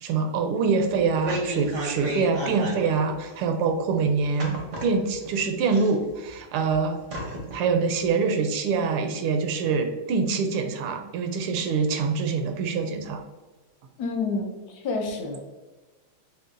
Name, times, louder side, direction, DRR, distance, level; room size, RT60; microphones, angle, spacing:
voice 1, 0.0-4.5 4.8-7.0 7.5-13.2, right 5 dB, 80° right, 5 dB, 1.4 m, -25 dB
sound 1, 0.9-3.0 3.3-3.4 4.4-5.3 5.7-6.4 6.7-6.8 7.1-7.6 8.0-8.1, right 1 dB, 65° right, 0.7 m, -32 dB
voice 2, 14.0-15.4, left 3 dB, 65° left, 1 dB, 1.0 m, -29 dB
6.4 x 2.3 x 2.5 m, 1.2 s
omnidirectional pair, 2.4 m